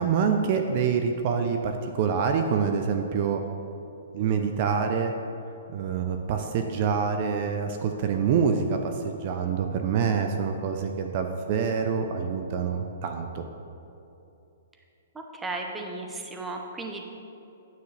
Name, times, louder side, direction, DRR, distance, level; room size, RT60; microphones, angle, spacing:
voice 1, 0.0-3.4 4.1-5.1 5.7-13.4, right 6 dB, 40° right, 5 dB, 0.6 m, -26 dB
voice 2, 15.1-17.0, right 2 dB, 10° right, 2 dB, 0.7 m, -35 dB
9.5 x 8.9 x 3.3 m, 2.8 s
hypercardioid pair, 150°, 0 cm